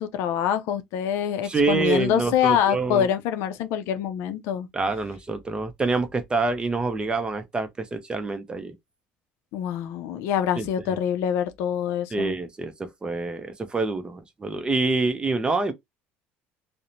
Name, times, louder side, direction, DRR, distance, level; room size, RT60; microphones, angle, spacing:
voice 1, 0.0-4.7 9.5-12.3, left 9 dB, 70° left, 0.4 m, -25 dB
voice 2, 1.4-3.1 4.7-8.8 10.6-10.7 12.1-15.7, right 3 dB, 20° right, 0.5 m, -26 dB
2.8 x 2.1 x 2.5 m
supercardioid pair, 100°, 5 cm